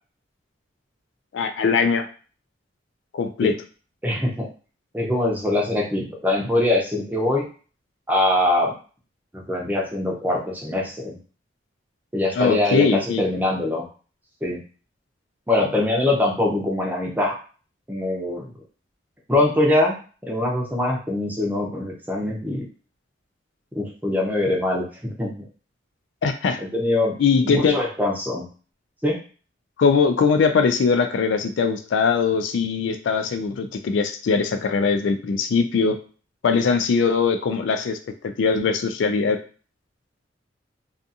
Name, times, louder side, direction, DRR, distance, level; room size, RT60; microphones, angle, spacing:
voice 1, 1.3-2.1 3.1-3.5 12.4-13.2 26.2-26.6 27.2-27.8 29.8-36.0 36.4-38.0 38.4-39.4, left 5 dB, 75° left, 8 dB, 0.3 m, -21 dB
voice 2, 4.0-4.5 4.9-7.4 8.1-8.7 9.3-11.2 12.1-13.8 14.4-14.6 15.5-17.4 17.9-18.5 19.3-20.0 20.3-22.6 23.8-25.4 26.6-27.1 27.4-28.4 29.0-29.2, left 2 dB, 10° right, -2 dB, 0.5 m, -23 dB
2.4 x 2.4 x 2.6 m, 0.38 s
head